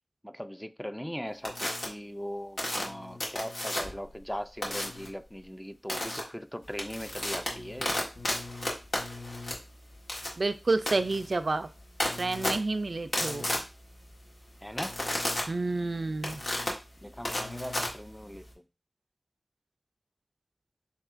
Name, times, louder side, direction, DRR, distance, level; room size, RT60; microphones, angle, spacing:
voice 1, 0.2-8.0 14.6-15.0 17.0-18.4, equal, 5° left, 0.4 m, -39 dB
sound 1, 1.4-1.9 2.6-4.1 4.6-5.1 5.9-6.2 6.6-18.5, left 1 dB, 90° left, 1.4 m, -33 dB
voice 2, 10.4-11.7 12.2-13.5 15.5-16.4, right 3 dB, 70° right, 0.3 m, -29 dB
7.3 x 2.8 x 2.5 m
wide cardioid pair, 65°, 0 cm